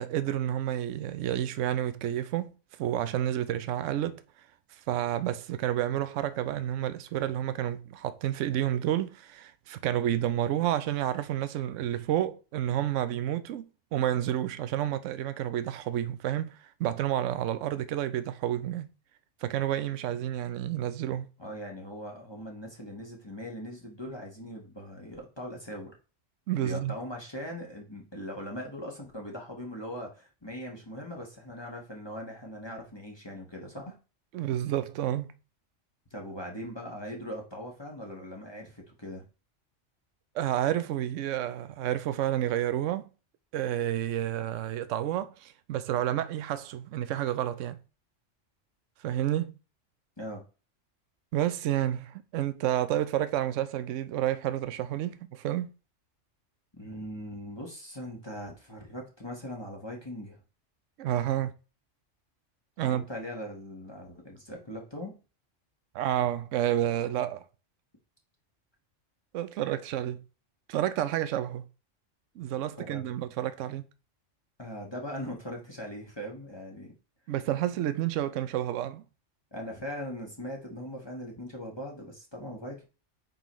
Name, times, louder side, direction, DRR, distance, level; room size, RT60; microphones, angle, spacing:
voice 1, 0.0-2.5 2.8-4.2 4.7-18.9 19.4-21.3 26.5-27.0 34.3-35.4 40.3-43.1 43.5-47.8 49.0-49.5 51.3-55.7 61.0-61.5 62.8-63.0 65.9-67.4 69.3-70.2 70.7-71.6 72.4-73.8 77.3-79.0, right 11 dB, 80° right, 0.9 m, -30 dB
voice 2, 21.4-25.9 26.6-34.0 36.1-39.2 50.2-50.4 56.7-60.4 62.8-65.1 72.8-73.0 74.6-76.9 79.5-82.8, equal, 20° left, 1.3 m, -40 dB
9.0 x 4.0 x 3.0 m
omnidirectional pair, 1.3 m